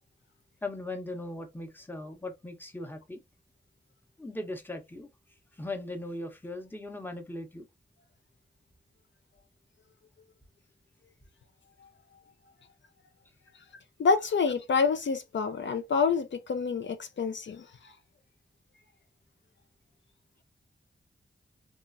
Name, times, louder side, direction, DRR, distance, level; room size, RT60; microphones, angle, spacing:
voice 1, 0.6-3.2 4.2-5.1 5.5-7.6, left 2 dB, 10° left, 0.7 m, -38 dB
voice 2, 14.0-17.6, left 5 dB, 70° left, 0.4 m, -27 dB
2.9 x 2.4 x 2.5 m
wide cardioid pair, 60°, 20 cm